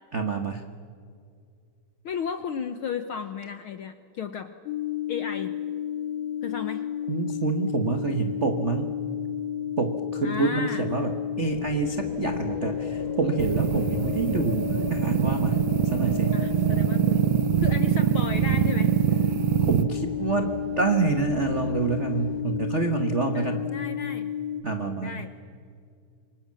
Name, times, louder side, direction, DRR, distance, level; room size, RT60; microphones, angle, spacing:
voice 1, 0.1-0.6 7.1-8.9 9.8-16.4 19.6-23.6 24.6-25.2, right 4 dB, 55° right, 6 dB, 0.7 m, -27 dB
voice 2, 2.0-4.5 5.1-5.6 6.4-6.9 10.2-10.9 16.3-17.3 17.6-19.0 23.3-24.3 25.0-25.3, left 6 dB, 65° left, 9 dB, 1.3 m, -34 dB
sound 1, 4.7-24.6, left 10 dB, 45° left, 2.1 m, -32 dB
sound 2, 11.4-22.4, left 1 dB, 30° left, 5.0 m, -40 dB
sound 3, 13.4-19.8, right 13 dB, 70° right, 1.9 m, -24 dB
28.0 x 24.5 x 7.6 m, 2.2 s
omnidirectional pair, 3.5 m